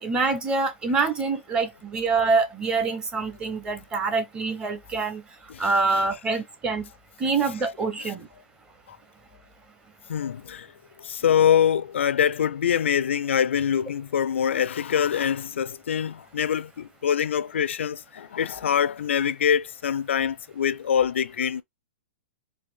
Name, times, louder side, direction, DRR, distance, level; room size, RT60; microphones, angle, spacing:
voice 1, 0.0-5.2 5.6-6.8 7.2-8.3, right 4 dB, 10° right, 0.8 m, -25 dB
voice 2, 5.5-6.0 10.1-10.7 11.0-21.6, left 8 dB, 90° left, 0.4 m, -24 dB
4.1 x 2.6 x 3.4 m
hypercardioid pair, 160°, 6 cm